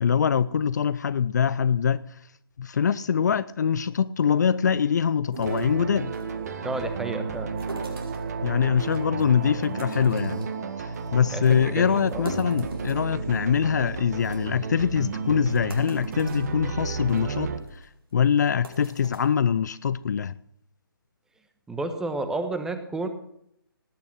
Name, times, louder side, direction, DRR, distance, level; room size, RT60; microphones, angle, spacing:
voice 1, 0.0-2.0 2.6-6.1 8.4-10.4 10.8-17.5 18.1-20.3, left 7 dB, 50° left, 0.5 m, -23 dB
sound 1, 5.3-6.3 7.6-8.3 8.8-9.2 9.6-10.6 10.9-11.1 11.4-11.5 12.0-13.6 13.9-14.0 14.2-14.4 15.0-15.1 15.5-16.5 17.0-17.2 17.7-17.8 18.4-19.2, right 2 dB, 75° right, 4.9 m, -40 dB
sound 2, 5.5-17.6, right 4 dB, 45° right, 1.8 m, -32 dB
voice 2, 6.6-7.5 11.3-12.2 21.7-23.1, right 2 dB, 5° right, 1.2 m, -31 dB
18.5 x 9.4 x 6.0 m
figure-of-eight pair, 145°, 12 cm